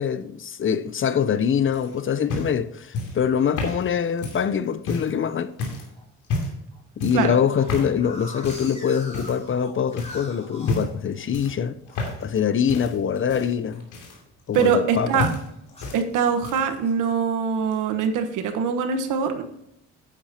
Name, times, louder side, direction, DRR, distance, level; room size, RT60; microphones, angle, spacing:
voice 1, 0.0-5.5 7.0-11.7 12.2-13.8 14.5-15.2, left 7 dB, 40° left, 0.7 m, -24 dB
sound 1, 1.7-5.2 5.6-5.9 6.2-6.7 7.0-7.3 7.7-8.0 8.4-8.7 9.1-9.6 10.0-10.2 10.6-11.0 11.3-12.4 12.7-14.9 15.2-16.0 16.3-16.8 17.7-17.8, left 2 dB, 85° left, 2.8 m, -31 dB
sound 2, 1.9-2.3 2.8-2.9 3.2-3.5 3.9-4.6 5.2-5.6 5.9-6.0 6.3-6.4 6.7-11.5 11.9-14.4 14.7-15.2 15.7-17.1, left 1 dB, 20° left, 3.6 m, -44 dB
voice 2, 14.5-15.3 15.9-19.4, right 6 dB, 90° right, 1.3 m, -23 dB
10.0 x 8.6 x 2.9 m
cardioid pair, 90°, 30 cm